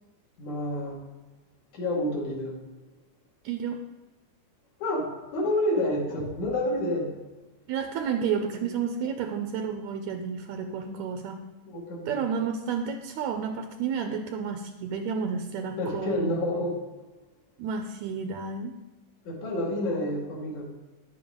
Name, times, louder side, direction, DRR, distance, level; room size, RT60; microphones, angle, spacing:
voice 1, 0.4-1.0 1.7-2.6 4.8-5.1 5.3-7.1 8.5-8.7 10.8-11.0 11.7-12.2 15.8-16.7 19.3-20.7, left 1 dB, 65° left, -3 dB, 3.5 m, -29 dB
voice 2, 3.4-3.8 7.7-11.4 12.1-16.3 17.6-18.8, right 6 dB, 80° right, 5 dB, 1.8 m, -31 dB
11.0 x 8.7 x 3.7 m, 1.2 s
omnidirectional pair, 3.6 m